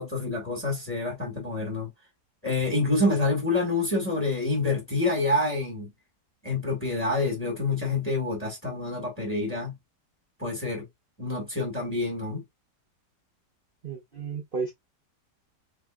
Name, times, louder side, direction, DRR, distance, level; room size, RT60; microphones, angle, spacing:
voice 1, 0.0-1.9 2.4-5.9 6.4-9.7 10.4-10.9 11.2-12.4, left 2 dB, 10° left, 1.5 m, -27 dB
voice 2, 13.8-14.7, right 5 dB, 35° right, 1.0 m, -33 dB
3.6 x 3.4 x 2.3 m
omnidirectional pair, 1.9 m